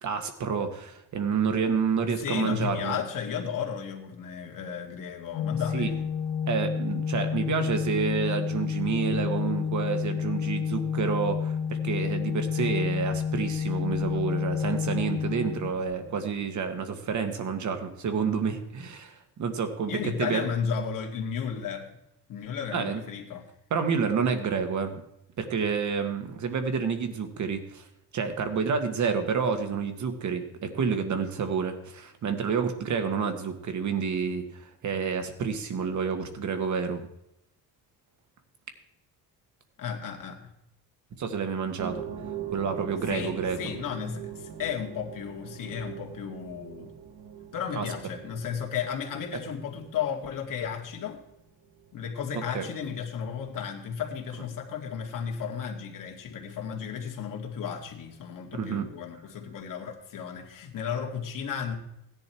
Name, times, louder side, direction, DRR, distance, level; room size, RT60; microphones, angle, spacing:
voice 1, 0.0-3.0 5.7-5.9 6.5-20.5 22.7-23.0 23.7-25.0 25.4-27.8 28.1-37.0 41.2-42.0 42.5-43.6 47.8-47.9 52.5-52.7 58.5-58.8, right 6 dB, 45° right, 7 dB, 1.7 m, -29 dB
voice 2, 2.2-6.1 15.3-15.8 19.9-21.9 22.3-23.5 39.8-40.5 43.1-46.9 47.5-51.2 51.9-61.7, left 7 dB, 55° left, 2 dB, 2.3 m, -34 dB
Organ, 5.3-16.2, left 7 dB, 80° left, 0.9 m, -30 dB
sound 1, 41.8-54.4 54.6-54.8 55.4-55.5, right 8 dB, 75° right, 1.9 m, -43 dB
16.0 x 10.5 x 4.5 m, 0.80 s
cardioid pair, 150°, 39 cm